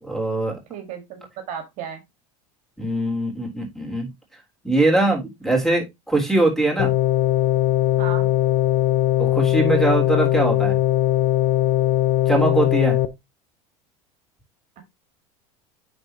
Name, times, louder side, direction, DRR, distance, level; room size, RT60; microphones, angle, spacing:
voice 1, 0.0-0.6 2.8-4.1 4.6-6.9 9.2-10.8 12.3-13.0, right 2 dB, ahead, 1 dB, 3.4 m, -22 dB
voice 2, 0.7-2.0 8.0-8.3 14.8-14.9, right 7 dB, 50° right, 7 dB, 1.7 m, -34 dB
sound 1, 6.8-13.1, left 13 dB, 45° left, 0.9 m, -20 dB
9.7 x 4.0 x 2.9 m, 0.20 s
supercardioid pair, 110°, 17 cm